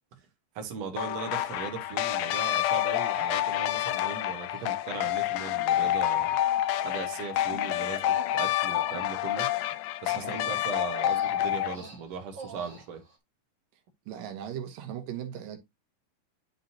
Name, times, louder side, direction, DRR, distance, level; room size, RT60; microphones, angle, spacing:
voice 1, 0.6-6.4 6.8-9.5 10.0-13.0, right 5 dB, 55° right, 2.5 m, -38 dB
sound 1, 1.0-11.8, left 13 dB, 85° left, 1.6 m, -28 dB
Human voice, 1.1-1.2 2.0-2.4 3.0-3.1 3.4-3.6 3.9-4.1 4.5-4.7 5.0-6.0 6.3-6.6 6.9-13.2, right 4 dB, 20° right, 1.3 m, -48 dB
voice 2, 14.1-15.6, right 10 dB, 90° right, 2.9 m, -38 dB
11.0 x 4.0 x 2.8 m
omnidirectional pair, 3.8 m